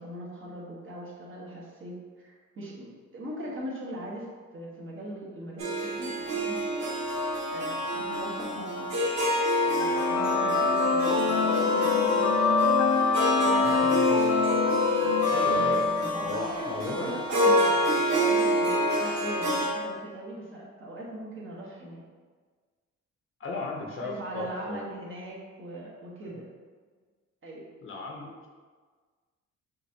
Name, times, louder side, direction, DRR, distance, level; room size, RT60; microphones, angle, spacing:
voice 1, 0.0-2.9 3.1-6.9 7.5-8.9 9.6-12.3 13.1-14.0 15.0-15.9 16.1-22.0 24.0-26.4 27.4-27.6 28.2-28.3, right 1 dB, 40° right, -5 dB, 1.3 m, -40 dB
Harp, 5.6-19.7, equal, 60° right, 1.2 m, -28 dB
sound 1, 9.6-16.6, left 4 dB, 75° left, 1.0 m, -24 dB
voice 2, 13.4-13.7 15.3-15.9 16.2-17.1 23.4-24.8 27.8-28.5, left 4 dB, 45° left, -1 dB, 0.8 m, -35 dB
5.8 x 2.7 x 2.8 m, 1.5 s
cardioid pair, 90°, 30 cm